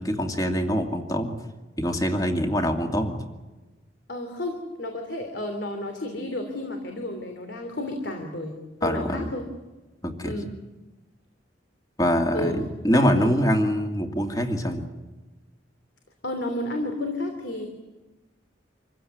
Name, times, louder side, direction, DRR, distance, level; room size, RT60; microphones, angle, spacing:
voice 1, 0.0-1.4 1.8-3.3 8.8-9.3 10.0-10.3 12.0-14.8, equal, 20° left, 4 dB, 2.5 m, -24 dB
voice 2, 4.1-9.5 10.2-10.6 12.3-12.6 13.0-13.3 16.2-17.7, left 1 dB, 70° left, 4 dB, 3.1 m, -32 dB
26.5 x 15.5 x 9.5 m, 1.2 s
head